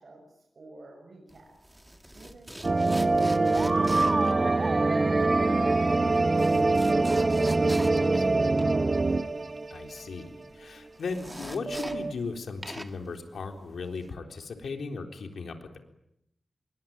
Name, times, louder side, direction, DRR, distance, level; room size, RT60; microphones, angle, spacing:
voice 1, 0.0-1.5 2.1-8.2 8.4-9.2, right 2 dB, 50° right, 1 dB, 7.0 m, -50 dB
sound 1, 1.3-12.3 12.6-14.1, equal, 5° right, 1.8 m, -44 dB
sound 2, 2.6-10.1 10.4-10.5 11.7-12.1, right 3 dB, 35° right, 1.0 m, -24 dB
voice 2, 9.7-15.8, left 4 dB, 80° left, 4 dB, 3.9 m, -37 dB
26.5 x 23.5 x 9.1 m, 0.79 s
wide cardioid pair, 115°, 0 cm